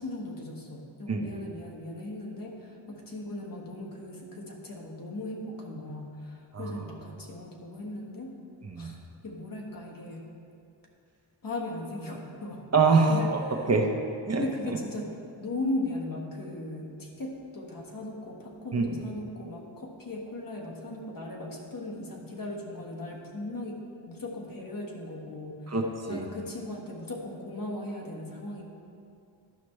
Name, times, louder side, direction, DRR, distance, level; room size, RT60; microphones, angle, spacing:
voice 1, 0.0-8.3 8.8-9.0 9.2-10.2 11.4-12.7 13.1-13.7 14.4-15.1 15.4-23.8 24.1-25.8 26.1-28.6, left 2 dB, 45° left, 0 dB, 1.3 m, -37 dB
voice 2, 12.7-13.4 13.7-13.9 14.3-14.4 18.7-18.8 25.7-26.2, right 4 dB, 35° right, 2 dB, 0.8 m, -24 dB
11.5 x 5.9 x 3.2 m, 2.5 s
wide cardioid pair, 110°, 46 cm